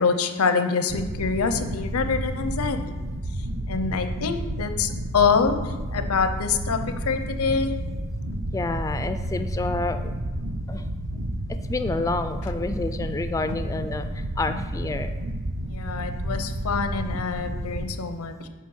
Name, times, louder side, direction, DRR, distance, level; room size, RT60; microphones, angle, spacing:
voice 1, 0.0-2.8 3.7-7.7 15.7-18.5, left 5 dB, 75° left, 8 dB, 0.6 m, -25 dB
sound 1, 0.9-17.9, right 1 dB, 65° right, 0.7 m, -31 dB
voice 2, 2.5-2.9 8.5-10.0 10.7-10.8 11.5-15.1 17.7-17.9, left 3 dB, 15° left, 9 dB, 0.3 m, -29 dB
9.5 x 3.3 x 6.2 m, 1.2 s
head